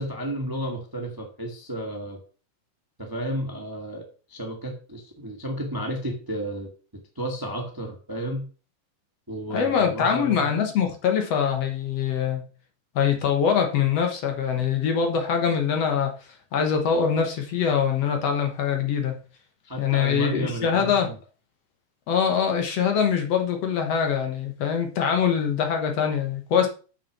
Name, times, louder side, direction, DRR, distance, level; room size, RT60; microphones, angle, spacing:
voice 1, 0.0-2.2 3.0-6.7 7.1-8.4 9.3-10.4 19.6-21.1, right 1 dB, 20° right, 0.6 m, -32 dB
voice 2, 9.5-12.5 13.0-16.1 16.5-19.2 19.8-21.1 22.1-26.7, left 7 dB, 60° left, 2.1 m, -23 dB
7.2 x 6.0 x 5.9 m
omnidirectional pair, 3.7 m